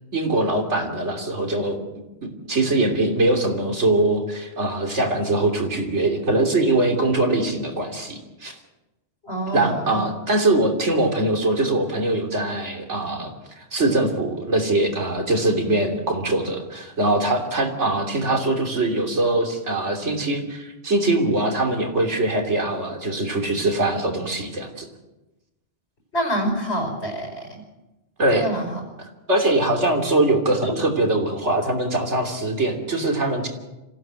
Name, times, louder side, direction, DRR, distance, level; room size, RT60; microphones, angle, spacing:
voice 1, 0.1-1.8 2.2-8.6 9.5-24.9 28.2-28.5 29.3-33.5, right 2 dB, 75° right, 3 dB, 3.4 m, -22 dB
voice 2, 9.2-10.0 26.1-27.6 28.3-28.8 30.6-30.7, right 1 dB, 60° left, 3 dB, 5.3 m, -27 dB
26.5 x 16.0 x 7.7 m, 1.0 s
omnidirectional pair, 1.2 m